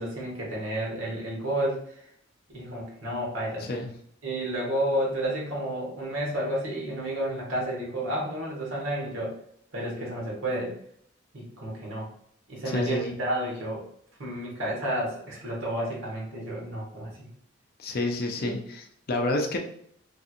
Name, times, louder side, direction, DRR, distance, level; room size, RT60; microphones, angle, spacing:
voice 1, 0.0-1.8 2.5-3.7 4.2-9.3 9.7-10.7 11.3-12.1 12.5-13.8 14.2-17.3, right 1 dB, 70° right, -3 dB, 1.3 m, -31 dB
voice 2, 12.7-13.1 17.8-19.6, left 2 dB, 45° left, 3 dB, 0.5 m, -29 dB
3.2 x 2.7 x 2.5 m, 0.66 s
head